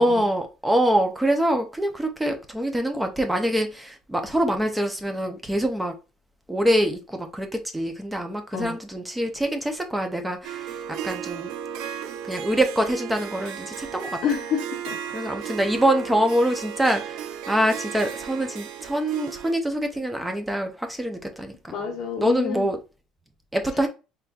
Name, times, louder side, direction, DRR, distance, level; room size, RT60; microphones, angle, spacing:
voice 1, 0.0-5.9 6.5-10.7 11.0-11.5 12.3-14.2 15.1-21.8 22.2-22.8 23.5-23.9, right 1 dB, 5° right, 0.5 m, -25 dB
Harp, 10.4-19.5, right 8 dB, 70° right, 0.4 m, -35 dB
voice 2, 14.2-15.0 21.7-22.7, left 7 dB, 50° left, 0.9 m, -28 dB
4.1 x 3.3 x 2.3 m
cardioid pair, 165°, 0 cm